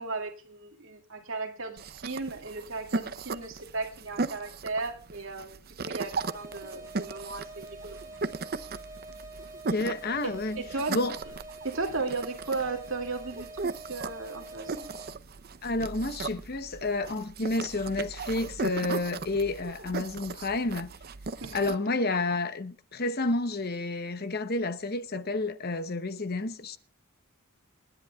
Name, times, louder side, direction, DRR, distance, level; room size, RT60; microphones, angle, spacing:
voice 1, 0.0-8.0 10.5-11.0 11.6-14.9 21.4-21.7, right 3 dB, 60° right, 2.5 m, -36 dB
sound 1, 1.8-21.8, right 4 dB, 45° right, 0.6 m, -37 dB
sound 2, 6.1-15.1, right 2 dB, 10° right, 6.8 m, -46 dB
voice 2, 9.7-10.6 10.9-11.2 15.6-20.9 21.5-26.8, left 2 dB, 45° left, 0.9 m, -30 dB
28.5 x 10.5 x 2.4 m
head